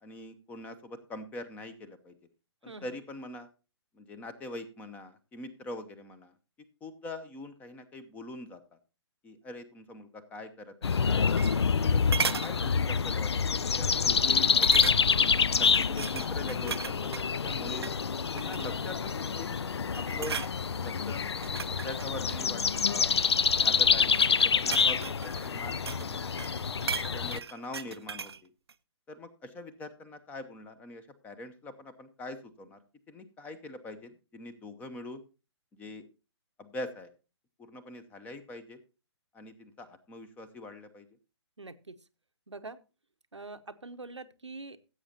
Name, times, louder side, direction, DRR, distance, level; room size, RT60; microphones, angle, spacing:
voice 1, 0.0-2.2 2.6-3.5 3.9-6.3 6.8-8.6 9.2-11.4 11.8-15.0 15.5-17.9 18.3-20.4 20.8-21.3 21.7-23.2 23.6-26.6 27.1-28.5 29.1-32.8 33.1-35.2 35.7-36.0 36.6-37.1 37.6-38.8 39.3-41.1, left 2 dB, 10° left, 13 dB, 0.7 m, -43 dB
sound 1, 10.8-27.4, left 6 dB, 65° left, 0.4 m, -27 dB
sound 2, 11.0-11.8 12.1-12.5 13.0-13.3 13.6-13.7 14.6-15.3 15.6-17.3 17.7-18.0 18.4-18.9 19.4-19.7 19.9-20.5 21.3-22.9 23.7-26.1 26.4-28.4 28.7-28.8, right 6 dB, 60° right, 0.5 m, -36 dB
sound 3, 17.1-17.6 18.7-19.2 20.2-20.7 21.7-22.4 23.4-23.9 24.1-24.2 25.1-25.5, left 5 dB, 35° left, 1.4 m, -50 dB
voice 2, 41.6-42.0 42.5-42.8 43.3-44.8, right 3 dB, 80° right, 9 dB, 0.9 m, -44 dB
16.0 x 7.9 x 2.8 m, 0.31 s
figure-of-eight pair, 130°, 15 cm